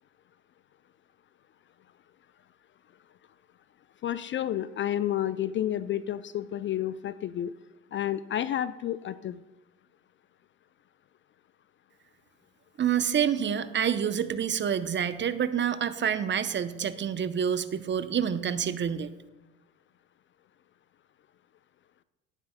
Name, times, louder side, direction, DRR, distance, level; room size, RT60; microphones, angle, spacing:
voice 1, 4.0-7.5 7.9-9.4, left 11 dB, 35° left, 15 dB, 0.4 m, -30 dB
voice 2, 12.8-19.1, right 8 dB, 30° right, 13 dB, 0.7 m, -28 dB
18.0 x 9.5 x 2.2 m, 1.1 s
hypercardioid pair, 60°, 37 cm